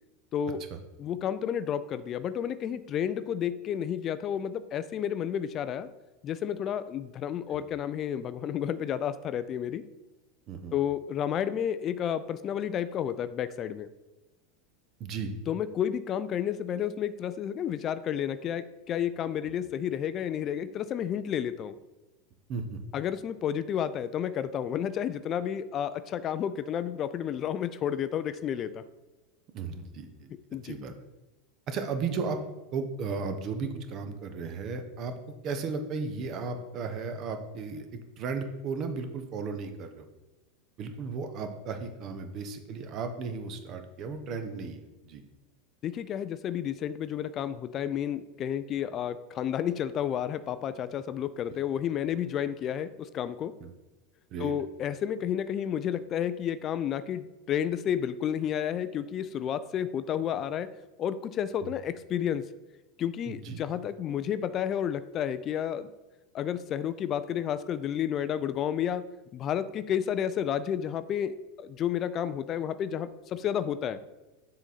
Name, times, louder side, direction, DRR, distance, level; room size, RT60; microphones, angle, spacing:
voice 1, 0.3-0.6 1.0-5.9 6.2-9.8 10.7-13.9 15.5-21.8 22.9-28.7 30.5-30.8 45.8-53.5 54.4-60.7 61.0-62.4 63.0-65.9 66.3-69.0 69.3-74.0, left 9 dB, 35° left, 13 dB, 0.3 m, -31 dB
voice 2, 15.0-15.3 22.5-22.8 29.5-30.3 30.6-30.9 31.7-32.4 32.7-35.1 35.4-37.9 38.2-40.1 40.8-45.2 53.6-53.7 54.3-54.5 63.3-63.6, right 4 dB, 40° right, 7 dB, 0.8 m, -35 dB
7.1 x 3.7 x 4.2 m, 1.1 s
figure-of-eight pair, 85°, 0 cm